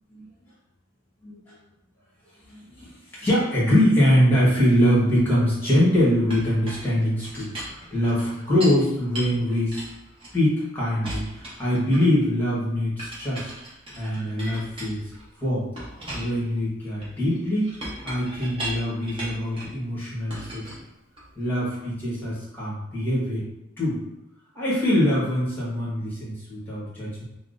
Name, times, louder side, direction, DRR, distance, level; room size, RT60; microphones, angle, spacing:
voice 1, 1.2-1.5 2.5-9.8 10.3-13.5 13.9-15.0 15.4-15.7 16.1-17.7 18.0-20.7 21.3-23.4 23.8-24.0 24.5-27.2, equal, 10° left, -8 dB, 1.2 m, -23 dB
Chink clink, 6.3-8.8 9.1-10.6 11.0-12.3 13.0-15.3 15.8-19.8 20.3-21.4, right 1 dB, 25° right, 0.8 m, -38 dB
5.7 x 2.0 x 2.5 m, 0.90 s
head